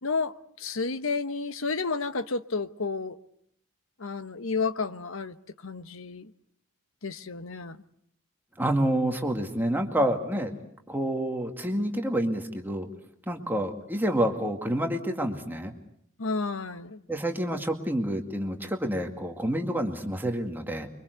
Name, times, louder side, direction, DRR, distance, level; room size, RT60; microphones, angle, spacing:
voice 1, 0.0-3.2 4.0-5.4 5.6-6.3 7.0-7.8 16.2-17.0, left 4 dB, 70° left, 1.1 m, -31 dB
voice 2, 8.6-10.5 10.9-12.9 13.3-15.7 17.1-20.9, right 1 dB, 10° right, 2.1 m, -28 dB
25.5 x 24.0 x 8.1 m
head